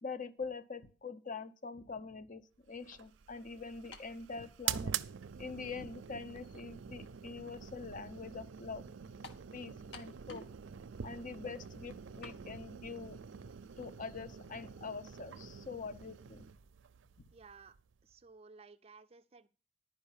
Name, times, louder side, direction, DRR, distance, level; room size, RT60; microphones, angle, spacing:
voice 1, 0.0-2.4 2.7-4.9 5.4-8.8 9.5-10.4 11.0-13.2 13.8-16.4, left 4 dB, 45° left, 12 dB, 0.7 m, -44 dB
sound 1, 2.8-18.1, right 8 dB, 85° right, 0.5 m, -45 dB
sound 2, 3.9-4.2 5.1-5.2 9.2-9.5 9.9-10.6 10.9-11.0 12.2-12.4, left 2 dB, 75° left, 1.3 m, -51 dB
voice 2, 17.3-19.5, right 4 dB, 30° right, 8 dB, 0.5 m, -57 dB
11.0 x 5.1 x 7.2 m, 0.37 s
head